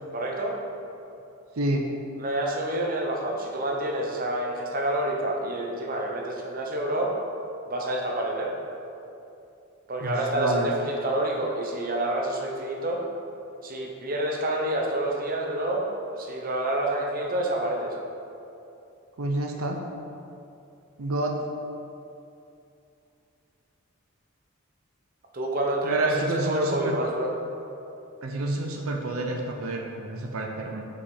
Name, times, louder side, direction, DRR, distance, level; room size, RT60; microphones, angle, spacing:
voice 1, 0.1-0.6 2.2-7.2 7.7-8.5 9.9-13.0 13.6-17.9 25.3-27.3, right 1 dB, 45° right, 0 dB, 0.9 m, -28 dB
voice 2, 10.0-10.7 19.2-19.8 21.0-21.4 25.8-27.0 28.2-30.9, right 2 dB, 90° right, 2 dB, 0.7 m, -28 dB
5.7 x 5.3 x 4.8 m, 2.7 s
head